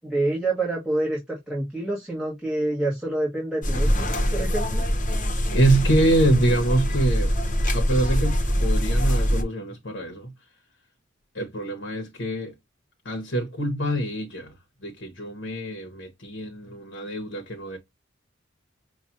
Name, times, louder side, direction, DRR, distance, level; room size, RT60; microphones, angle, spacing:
voice 1, 0.0-4.8, right 2 dB, 5° right, 1.6 m, -27 dB
sound 1, 3.6-9.4, equal, 40° left, 1.1 m, -23 dB
voice 2, 5.5-7.3 7.7-10.3 11.3-12.5 13.0-14.5 14.8-17.8, right 1 dB, 65° left, 1.2 m, -25 dB
5.9 x 2.6 x 2.6 m
head